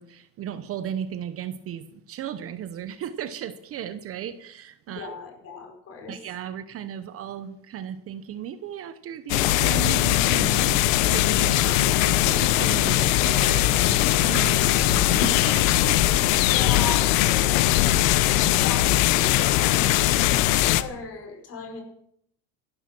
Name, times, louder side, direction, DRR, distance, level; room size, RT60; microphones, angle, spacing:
voice 1, 0.0-5.1 6.1-16.2 18.3-18.5, right 9 dB, 35° right, 12 dB, 0.8 m, -36 dB
voice 2, 4.9-6.2 14.8-15.6 16.4-18.0 18.4-21.8, left 4 dB, 40° left, 3 dB, 5.1 m, -38 dB
sound 1, 9.3-20.8, left 15 dB, 80° left, 1.0 m, -20 dB
15.0 x 12.0 x 6.0 m, 0.73 s
cardioid pair, 140°, 38 cm